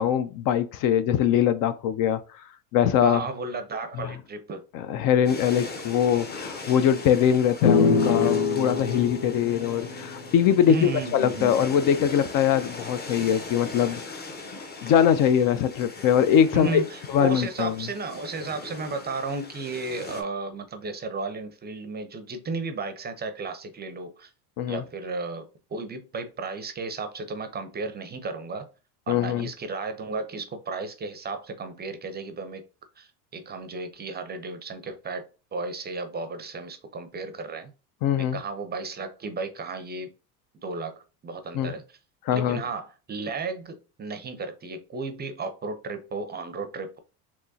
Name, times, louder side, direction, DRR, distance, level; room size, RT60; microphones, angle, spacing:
voice 1, 0.0-2.2 2.7-3.2 4.0-4.1 4.7-14.2 14.8-16.8 17.1-17.9 24.6-24.8 29.1-29.5 38.0-38.4 41.5-41.7 42.3-42.6, left 9 dB, 50° left, 0.4 m, -22 dB
voice 2, 3.0-4.6 10.7-11.6 16.5-24.3 24.7-28.7 29.1-32.6 33.0-35.2 35.5-37.7 38.2-40.1 40.6-42.0 42.3-47.0, right 3 dB, 25° right, 0.5 m, -34 dB
sound 1, 5.2-20.2, left 3 dB, 20° left, 0.8 m, -40 dB
sound 2, 7.6-11.2, left 5 dB, 80° left, 0.7 m, -25 dB
3.5 x 3.0 x 2.7 m
supercardioid pair, 100°, 43 cm